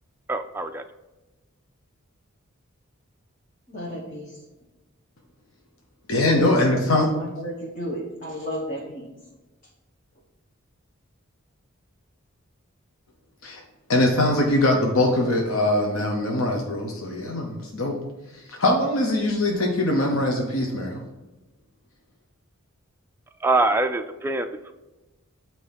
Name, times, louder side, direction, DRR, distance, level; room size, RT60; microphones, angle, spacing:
voice 1, 0.3-0.8 23.4-24.7, right 2 dB, 10° right, 6 dB, 0.4 m, -24 dB
voice 2, 3.7-4.4 6.3-9.1, equal, 35° left, -4 dB, 1.2 m, -33 dB
voice 3, 6.1-7.1 13.4-13.6 13.9-18.0 18.3-21.0, left 1 dB, 75° left, 1 dB, 1.0 m, -22 dB
8.7 x 3.1 x 5.8 m, 1.1 s
head